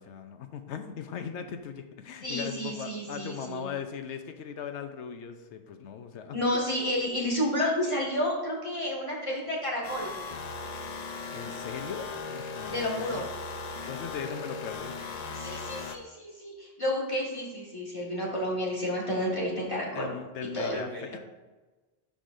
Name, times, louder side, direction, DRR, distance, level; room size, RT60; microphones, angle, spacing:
voice 1, 0.0-6.4 11.3-13.2 13.9-14.9 19.9-21.1, left 7 dB, 85° left, 7 dB, 1.0 m, -39 dB
voice 2, 2.2-3.7 6.3-10.1 12.7-13.3 15.3-20.1 20.4-21.2, left 1 dB, 30° left, -4 dB, 1.9 m, -31 dB
sound 1, 9.8-16.0, left 4 dB, 50° left, 0.6 m, -38 dB
11.5 x 5.0 x 2.6 m, 1.2 s
omnidirectional pair, 1.2 m